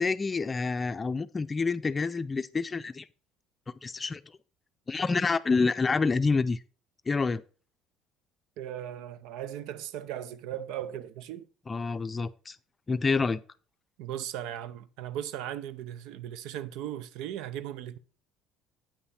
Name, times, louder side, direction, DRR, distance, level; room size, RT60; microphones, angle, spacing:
voice 1, 0.0-3.1 3.8-4.2 4.9-6.6 7.1-7.4 11.7-12.6 12.9-13.4, left 4 dB, 25° left, 0.5 m, -27 dB
voice 2, 8.6-11.5 14.0-18.0, right 11 dB, 75° right, 0.5 m, -37 dB
8.6 x 5.6 x 4.2 m
supercardioid pair, 85°, 0 cm